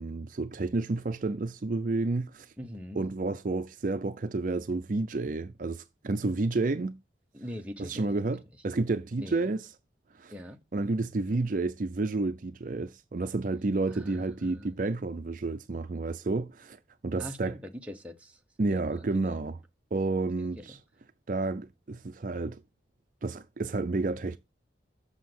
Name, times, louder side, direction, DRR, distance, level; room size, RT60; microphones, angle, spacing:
voice 1, 0.0-2.5 2.9-7.0 7.8-9.7 10.1-10.3 10.7-16.8 17.0-17.6 18.6-19.6 19.9-20.8 21.3-22.6 23.2-24.4, right 3 dB, 45° right, 0.5 m, -30 dB
voice 2, 2.6-3.1 7.3-8.1 9.2-9.5 10.3-10.6 13.9-14.8 17.2-18.4 18.7-19.4 20.4-20.7, equal, 5° right, 0.9 m, -43 dB
7.4 x 6.5 x 6.0 m
head